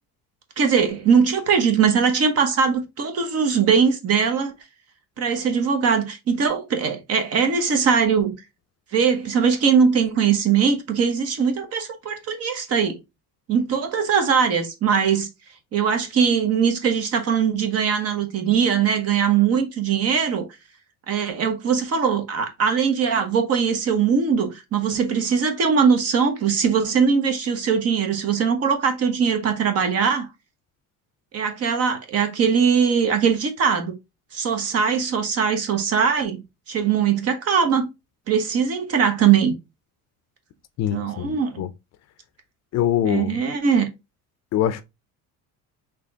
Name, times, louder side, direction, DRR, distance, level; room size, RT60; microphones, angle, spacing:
voice 1, 0.6-4.5 5.2-8.3 8.9-13.0 13.5-15.3 15.7-20.5 21.1-30.3 31.3-33.9 34.3-37.9 38.3-39.5 40.9-41.6 43.0-43.9, right 6 dB, 45° right, 1.0 m, -21 dB
voice 2, 40.8-41.7 42.7-43.4 44.5-44.8, left 11 dB, 50° left, 0.5 m, -23 dB
4.2 x 3.0 x 3.5 m
cardioid pair, 150°, 35 cm